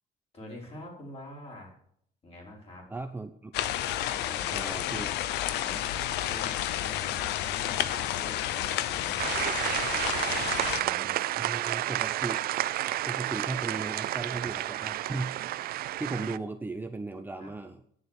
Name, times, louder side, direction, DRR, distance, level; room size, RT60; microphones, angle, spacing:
voice 1, 0.3-1.8 2.2-2.9 4.1-5.0 5.6-11.2 17.4-17.5, left 1 dB, 35° left, -1 dB, 4.7 m, -47 dB
voice 2, 2.9-3.5 4.5-5.1 10.4-10.5 11.3-12.4 13.1-15.3 16.0-17.8, right 3 dB, 10° right, 7 dB, 0.7 m, -36 dB
sound 1, 3.5-10.8, left 12 dB, 85° left, 0.7 m, -31 dB
sound 2, 9.2-16.4, right 14 dB, 65° right, 0.5 m, -31 dB
9.8 x 7.2 x 8.1 m, 0.67 s
cardioid pair, 110°, 17 cm